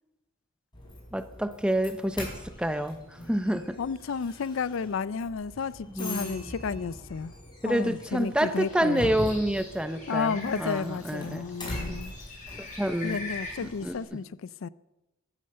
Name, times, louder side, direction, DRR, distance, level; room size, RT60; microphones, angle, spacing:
Doorbell, 0.7-13.9, left 1 dB, 25° left, 6.1 m, -42 dB
voice 1, 1.1-2.3 2.6-3.0 3.3-3.8 5.9-6.5 7.6-11.4 11.9-12.0 12.6-13.2 13.6-14.2, right 1 dB, 5° right, 0.8 m, -28 dB
voice 2, 3.8-7.3 7.6-9.1 10.1-12.1 13.0-14.7, left 5 dB, 75° left, 0.4 m, -32 dB
Bird, 8.5-14.0, left 3 dB, 40° left, 7.7 m, -43 dB
14.5 x 13.0 x 6.7 m
head